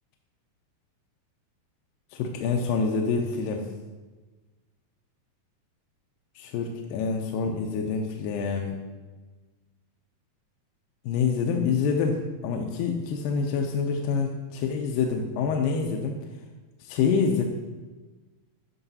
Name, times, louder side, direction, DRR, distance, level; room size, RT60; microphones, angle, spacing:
voice 1, 2.1-3.6 6.4-8.8 11.1-16.2 16.8-17.4, left 5 dB, 85° left, 2 dB, 2.2 m, -26 dB
11.0 x 6.0 x 2.7 m, 1.3 s
omnidirectional pair, 4.0 m